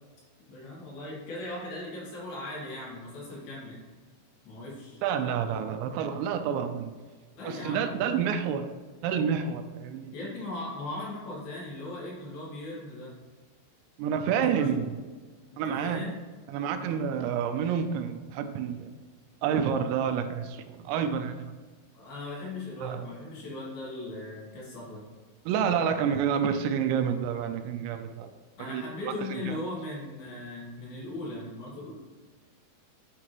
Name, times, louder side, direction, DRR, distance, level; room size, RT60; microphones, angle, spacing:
voice 1, 0.5-3.8 4.4-5.0 7.3-7.9 10.1-13.1 14.3-14.8 15.5-16.2 16.7-17.0 21.9-25.1 28.6-31.9, left 2 dB, 60° left, -6 dB, 3.6 m, -38 dB
voice 2, 5.0-6.9 7.4-8.7 9.0-10.1 14.0-14.9 15.6-16.1 16.5-18.9 19.4-21.5 22.8-23.0 25.5-28.3 28.7-29.6, right 7 dB, 85° right, 8 dB, 2.8 m, -29 dB
9.8 x 4.7 x 3.0 m, 1.4 s
omnidirectional pair, 5.2 m